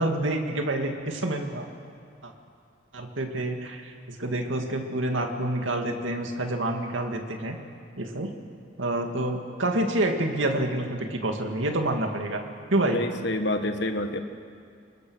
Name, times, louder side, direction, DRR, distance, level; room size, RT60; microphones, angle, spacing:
voice 1, 0.0-1.7 2.2-2.3 2.9-3.9 4.2-7.6 8.0-8.3 8.8-13.0, right 1 dB, 90° right, 4 dB, 2.2 m, -28 dB
voice 2, 12.9-14.2, left 1 dB, 65° left, 6 dB, 1.6 m, -27 dB
27.0 x 22.0 x 6.4 m, 2.3 s
head